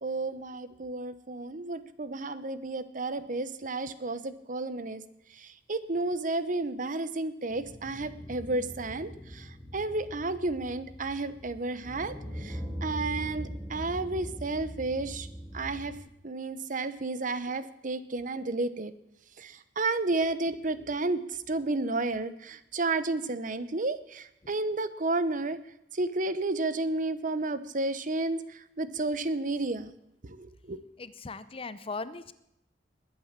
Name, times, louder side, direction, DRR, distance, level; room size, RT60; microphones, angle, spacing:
voice 1, 0.0-5.0 5.4-15.3 15.5-15.9 16.2-18.9 19.4-21.2 21.5-25.6 25.9-29.9 30.2-30.8, right 2 dB, 50° right, 14 dB, 1.0 m, -32 dB
sound 1, 7.5-16.0, equal, 10° right, 3.7 m, -41 dB
voice 2, 31.0-32.3, left 3 dB, 30° left, 14 dB, 0.7 m, -38 dB
21.0 x 8.6 x 7.4 m, 0.82 s
head